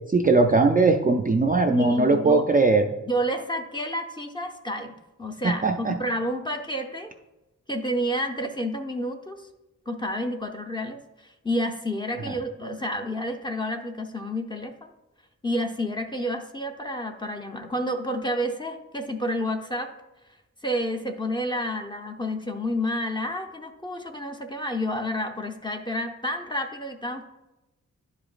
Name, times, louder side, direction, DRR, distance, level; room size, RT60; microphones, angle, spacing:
voice 1, 0.1-2.9 5.4-6.0 12.3-12.4, right 3 dB, 25° right, 3 dB, 0.4 m, -20 dB
voice 2, 1.7-2.5 3.1-7.1 7.7-9.4 9.9-11.0 11.4-14.7 15.4-19.9 20.6-27.2, equal, 15° left, 4 dB, 0.6 m, -29 dB
11.0 x 4.9 x 2.4 m, 1.0 s
wide cardioid pair, 115°, 32 cm